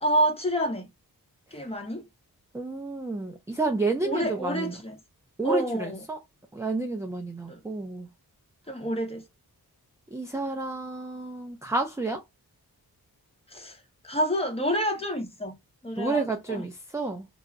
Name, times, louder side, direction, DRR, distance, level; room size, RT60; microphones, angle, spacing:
voice 1, 0.0-0.9 1.5-2.0 4.0-5.0 5.4-6.0 7.5-7.6 8.7-9.2 13.5-13.8 14.0-15.6 15.8-16.6, right 1 dB, 15° left, 0.8 m, -28 dB
voice 2, 2.5-4.7 5.4-6.2 6.5-8.1 10.1-12.2 16.0-17.3, right 3 dB, 10° right, 0.3 m, -30 dB
2.3 x 2.0 x 3.6 m
wide cardioid pair, 70°, 38 cm